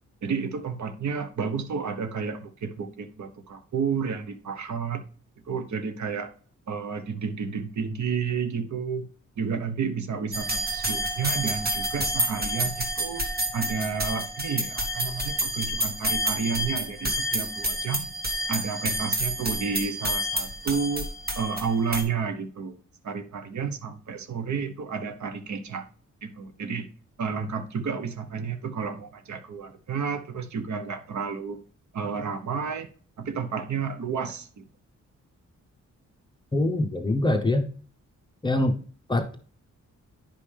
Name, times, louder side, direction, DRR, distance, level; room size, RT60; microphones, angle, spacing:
voice 1, 0.2-5.0 5.5-6.3 6.7-9.1 9.4-13.2 13.5-18.1 18.5-21.1 21.4-22.7 23.0-25.8 26.2-26.9 27.2-31.6 31.9-32.9 33.2-34.6, right 6 dB, 70° right, 9 dB, 1.0 m, -31 dB
sound 1, 10.3-22.0, equal, 30° right, 1.5 m, -29 dB
voice 2, 36.5-37.6 38.4-38.8 39.1-39.4, left 1 dB, 15° left, 4 dB, 0.8 m, -24 dB
10.0 x 5.5 x 3.3 m, 0.43 s
wide cardioid pair, 160°, 30 cm